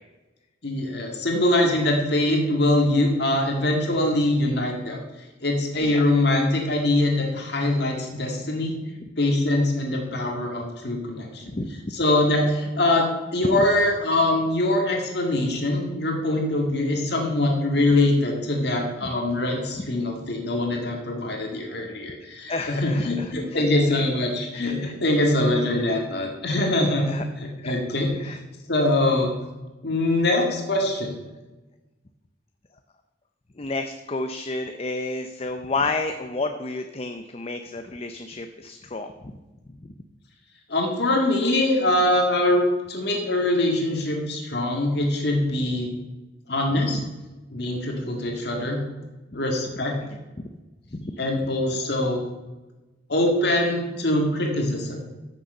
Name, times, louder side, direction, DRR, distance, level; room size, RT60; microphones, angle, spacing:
voice 1, 0.6-5.0 5.4-8.7 9.2-11.6 11.9-27.0 27.4-28.1 28.7-29.3 29.8-31.1 40.7-45.9 46.5-47.0 47.5-48.8 49.3-49.9 51.2-52.3 53.1-55.0, left 1 dB, 60° left, 1 dB, 1.8 m, -23 dB
voice 2, 22.5-23.6 24.6-24.9 27.1-27.2 27.6-27.7 28.1-28.4 33.6-39.3 39.8-39.9 50.4-50.5 50.9-51.2, left 3 dB, 30° left, 6 dB, 0.6 m, -31 dB
14.5 x 6.5 x 5.4 m, 1.1 s
head